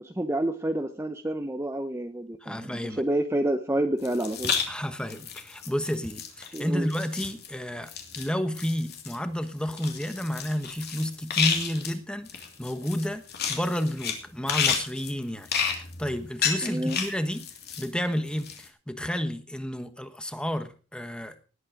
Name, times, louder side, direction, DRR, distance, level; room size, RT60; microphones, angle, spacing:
voice 1, 0.0-4.5 6.5-6.9 16.6-17.0, right 1 dB, 10° right, 6 dB, 0.7 m, -29 dB
voice 2, 2.4-3.0 4.7-12.3 12.6-13.2 13.5-15.5 15.8-17.5 17.8-21.4, equal, 5° left, 9 dB, 1.2 m, -31 dB
sound 1, 4.0-4.7 4.9-6.6 6.9-7.5 7.9-8.3 8.5-9.2 9.7-11.9 12.3-14.2 14.5-17.9 18.2-18.7, left 6 dB, 50° left, 2.8 m, -31 dB
19.0 x 8.7 x 5.1 m, 0.38 s
head